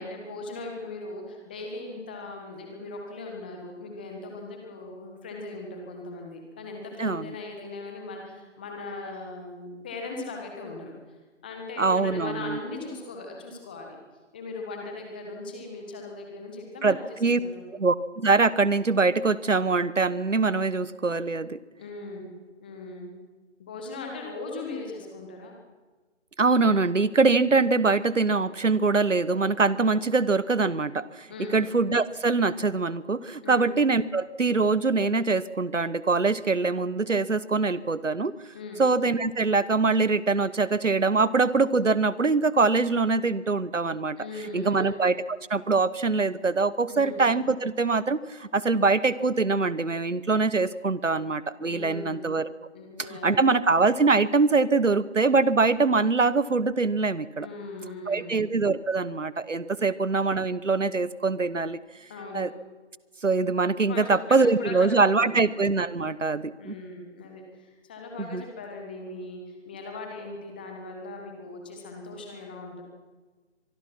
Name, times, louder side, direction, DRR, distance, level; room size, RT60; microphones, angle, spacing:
voice 1, 0.0-10.9 11.4-14.0 14.3-17.6 21.8-22.2 22.6-23.1 23.6-25.5 31.3-31.6 33.4-33.6 38.5-38.8 44.2-45.0 46.9-47.2 51.6-52.3 52.7-53.5 57.4-58.4 62.1-62.4 63.9-65.3 66.6-72.8, left 3 dB, 10° left, 2 dB, 1.4 m, -39 dB
voice 2, 11.8-12.6 16.8-17.4 17.8-21.6 26.4-31.3 31.5-38.3 38.8-44.2 44.5-52.5 53.0-57.5 58.1-61.8 62.3-62.5 63.2-66.7 68.2-68.4, right 4 dB, 80° right, 18 dB, 1.1 m, -23 dB
24.5 x 20.5 x 6.0 m, 1.3 s
figure-of-eight pair, 160°, 37 cm